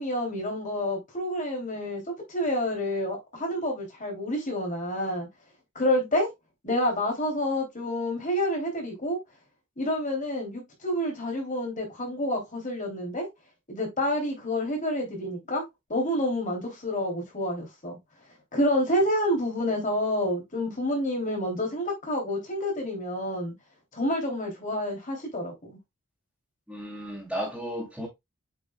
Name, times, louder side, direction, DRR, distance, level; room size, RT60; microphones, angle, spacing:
voice 1, 0.0-5.3 5.7-6.3 6.6-9.2 9.8-13.3 13.7-15.6 15.9-18.0 18.5-23.5 23.9-25.8, left 1 dB, 35° left, 2.9 m, -28 dB
voice 2, 26.7-28.1, equal, ahead, 2.6 m, -34 dB
8.2 x 5.5 x 2.2 m
head